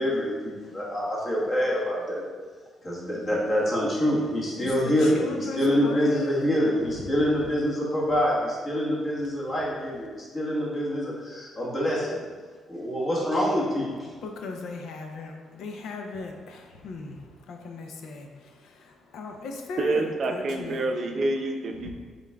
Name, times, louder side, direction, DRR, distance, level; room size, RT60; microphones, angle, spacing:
voice 1, 0.0-2.2 2.8-12.2 12.7-14.1, equal, 35° left, -5 dB, 1.3 m, -26 dB
voice 2, 5.2-5.6 14.2-15.3 15.6-16.3 16.8-17.1 17.5-18.3 19.1-19.8, left 3 dB, 75° left, 3 dB, 0.5 m, -36 dB
voice 3, 19.8-21.9, right 2 dB, 55° right, 4 dB, 0.5 m, -27 dB
5.1 x 3.6 x 2.3 m, 1.5 s
cardioid pair, 90°, 0 cm